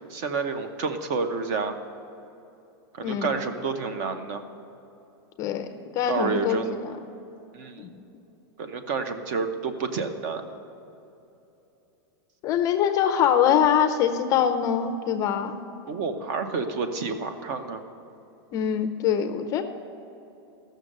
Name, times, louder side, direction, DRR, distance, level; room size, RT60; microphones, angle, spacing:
voice 1, 0.1-1.7 2.9-4.4 6.1-6.8 7.5-7.8 8.6-10.4 15.9-17.8, right 4 dB, 45° right, 9 dB, 0.9 m, -29 dB
voice 2, 3.0-3.3 5.4-5.7 5.9-6.9 7.8-8.0 12.4-15.6 18.5-19.6, left 9 dB, 25° left, 7 dB, 0.5 m, -24 dB
14.5 x 6.4 x 6.6 m, 2.9 s
supercardioid pair, 165°, 14 cm